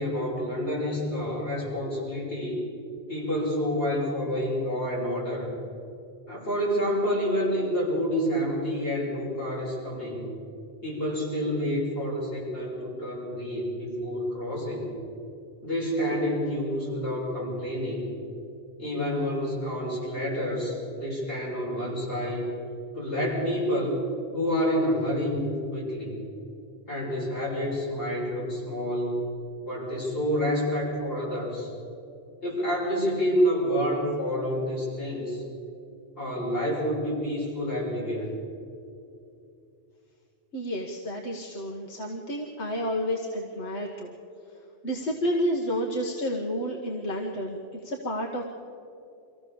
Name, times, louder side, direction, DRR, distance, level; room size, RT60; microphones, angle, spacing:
voice 1, 0.0-2.6 3.1-5.5 6.3-10.3 10.8-14.9 15.6-18.0 18.8-22.5 22.9-24.0 24.3-26.2 26.9-29.2 29.6-31.7 32.4-35.4 36.2-38.3, equal, 60° left, -6 dB, 6.8 m, -28 dB
voice 2, 40.5-44.1 44.8-47.6 47.8-48.4, equal, 85° left, 1 dB, 1.8 m, -30 dB
24.5 x 15.5 x 7.0 m, 2.6 s
omnidirectional pair, 1.1 m